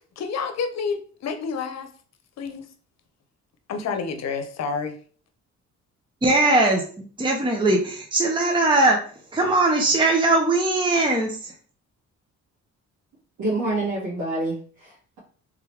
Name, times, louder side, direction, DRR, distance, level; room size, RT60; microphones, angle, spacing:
voice 1, 0.2-1.9 2.4-2.6 3.7-5.0, left 5 dB, 60° left, 0.8 m, -29 dB
voice 2, 6.2-9.0 9.3-11.5, right 2 dB, 15° right, 0.8 m, -20 dB
voice 3, 13.4-15.2, right 2 dB, 85° right, 1.8 m, -27 dB
3.6 x 3.3 x 3.2 m
cardioid pair, 90°, 30 cm